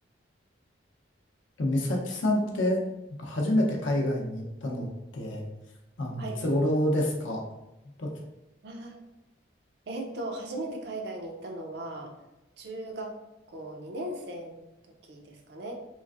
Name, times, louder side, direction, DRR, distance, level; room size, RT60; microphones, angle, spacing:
voice 1, 1.6-2.8 3.2-4.9 5.1-5.4 6.0-7.4 8.0-8.1, left 1 dB, 80° left, 0 dB, 0.6 m, -27 dB
voice 2, 8.6-9.0 9.9-12.1 12.6-13.2 13.5-14.7 15.0-15.7, right 1 dB, 55° right, 2 dB, 0.5 m, -37 dB
3.1 x 2.4 x 2.4 m, 0.96 s
head